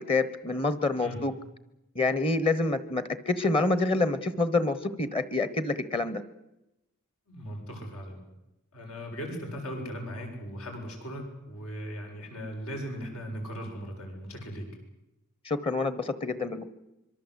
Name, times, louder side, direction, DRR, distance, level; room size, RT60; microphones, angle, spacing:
voice 1, 0.0-1.3 1.9-6.2 15.4-16.7, left 3 dB, 25° left, 14 dB, 1.1 m, -27 dB
voice 2, 7.3-8.2 8.7-14.7, equal, 80° left, 2 dB, 7.7 m, -38 dB
25.0 x 23.5 x 8.3 m, 0.91 s
head